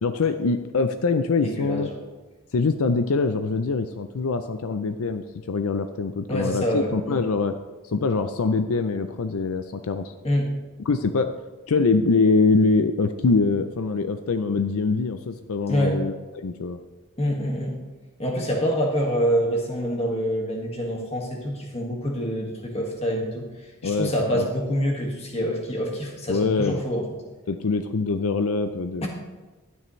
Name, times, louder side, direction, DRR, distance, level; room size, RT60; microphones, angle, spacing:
voice 1, 0.0-1.9 2.5-7.6 7.9-10.1 10.9-11.3 11.7-16.8 23.8-24.5 26.3-26.8 27.5-29.1, left 4 dB, 75° left, 9 dB, 0.5 m, -24 dB
voice 2, 1.4-2.0 6.3-7.2 10.2-10.5 15.7-16.0 17.2-17.8 18.2-23.4 23.8-27.0 29.0-29.1, equal, 30° left, 0 dB, 1.7 m, -26 dB
12.0 x 9.3 x 3.2 m, 1.2 s
head